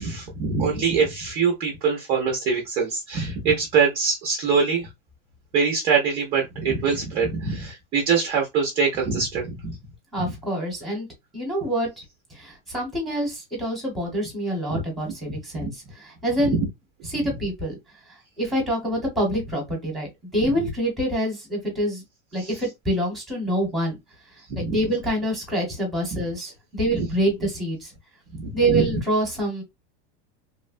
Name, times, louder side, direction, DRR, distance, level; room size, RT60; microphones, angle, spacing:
voice 1, 0.0-4.9 5.5-9.8 10.2-10.3 14.7-14.8 15.3-15.7 16.4-16.7 17.2-17.4 22.4-22.6 24.5-24.8 26.1-26.2 26.9-27.1 28.4-28.9, right 5 dB, 20° right, 0.3 m, -24 dB
voice 2, 10.1-11.1 11.3-11.9 12.3-15.7 16.2-16.6 17.1-17.8 18.4-22.0 22.3-24.0 24.6-27.9 28.5-29.6, right 1 dB, ahead, 0.9 m, -26 dB
2.9 x 2.1 x 2.4 m
supercardioid pair, 175°, 30 cm